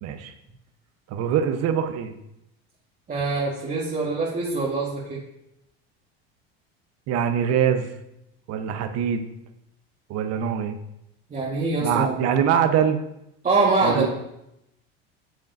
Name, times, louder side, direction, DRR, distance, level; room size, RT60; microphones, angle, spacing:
voice 1, 0.0-0.3 1.1-2.1 7.1-7.9 8.5-9.2 10.1-10.8 11.8-13.0 13.8-14.1, right 8 dB, 55° right, 8 dB, 1.0 m, -23 dB
voice 2, 3.1-5.2 11.3-12.1 13.4-14.1, right 3 dB, 25° right, -5 dB, 1.6 m, -24 dB
9.0 x 7.2 x 2.7 m, 0.84 s
hypercardioid pair, 90°, 31 cm